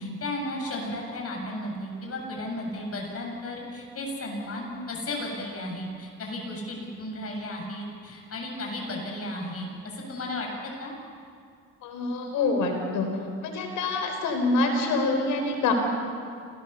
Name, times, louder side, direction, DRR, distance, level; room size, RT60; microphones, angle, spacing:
voice 1, 0.0-10.9, left 1 dB, 50° left, 0 dB, 7.5 m, -34 dB
voice 2, 11.8-13.1 13.4-15.7, left 3 dB, 90° left, 4 dB, 4.7 m, -26 dB
28.0 x 19.5 x 7.0 m, 2.2 s
cardioid pair, 90°, 30 cm